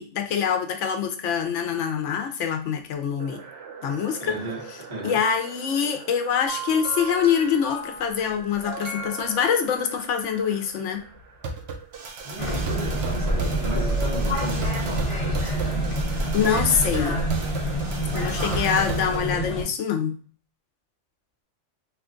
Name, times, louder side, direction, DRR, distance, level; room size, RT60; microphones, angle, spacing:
voice 1, 0.0-3.4 3.8-4.3 5.0-11.0 16.3-17.3 18.1-20.2, left 7 dB, 75° left, 5 dB, 0.9 m, -25 dB
sound 1, 3.2-19.2, right 3 dB, 65° right, 0.8 m, -37 dB
voice 2, 4.2-5.2 12.2-15.9, right 2 dB, 40° right, -3 dB, 1.3 m, -35 dB
sound 2, 6.5-10.0 11.1-11.2, right 2 dB, 55° left, 1.1 m, -36 dB
sound 3, 12.4-19.6, right 1 dB, 30° left, 1.0 m, -26 dB
3.0 x 2.3 x 3.7 m, 0.42 s
omnidirectional pair, 1.3 m